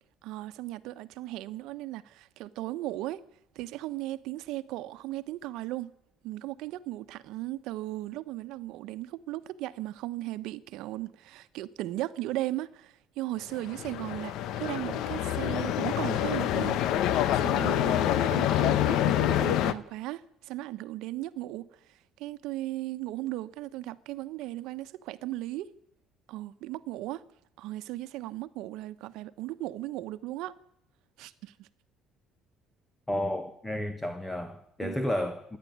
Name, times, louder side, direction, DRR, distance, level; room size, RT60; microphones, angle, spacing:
voice 1, 0.2-3.2 3.5-5.9 6.2-16.8 17.1-25.7 26.3-27.2 27.6-30.5 31.2-31.7 34.8-35.0, right 16 dB, 70° right, 1.1 m, -37 dB
sound 1, 13.5-19.7, left 11 dB, 60° left, 1.0 m, -27 dB
voice 2, 33.1-35.6, left 1 dB, 5° left, 1.2 m, -32 dB
26.5 x 10.5 x 9.5 m
cardioid pair, 165°, 0 cm